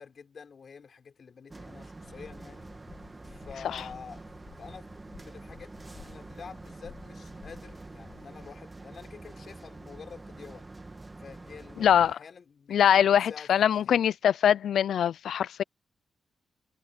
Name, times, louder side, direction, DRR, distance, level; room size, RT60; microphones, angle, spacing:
voice 1, 0.0-2.7 3.2-4.3 4.6-4.9 5.2-5.7 6.0-10.7 11.2-14.0, left 6 dB, 45° left, 5.2 m, -48 dB
sound 1, 1.5-12.1, right 2 dB, 20° right, 1.6 m, -46 dB
sound 2, 2.0-8.6, left 7 dB, 60° left, 6.3 m, -54 dB
voice 2, 11.8-12.2 12.7-15.6, left 9 dB, 80° left, 0.4 m, -23 dB
wide cardioid pair, 140°, 0 cm